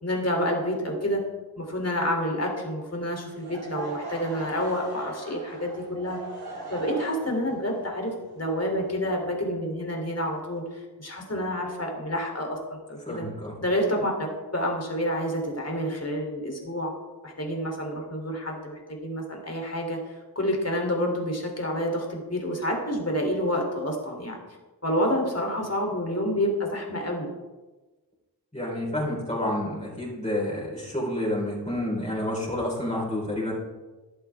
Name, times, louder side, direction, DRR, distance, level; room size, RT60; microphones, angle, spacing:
voice 1, 0.0-1.2 1.6-6.2 6.7-13.2 13.6-14.3 14.5-16.9 17.2-20.0 20.3-24.4 24.8-27.3, equal, 40° left, 1 dB, 3.4 m, -28 dB
Laughter / Crowd, 3.3-9.3, right 3 dB, 70° right, 4.4 m, -40 dB
voice 2, 13.1-13.5 28.5-33.5, left 1 dB, 15° left, -5 dB, 4.5 m, -29 dB
14.5 x 11.0 x 3.6 m, 1.2 s
wide cardioid pair, 50°, 40 cm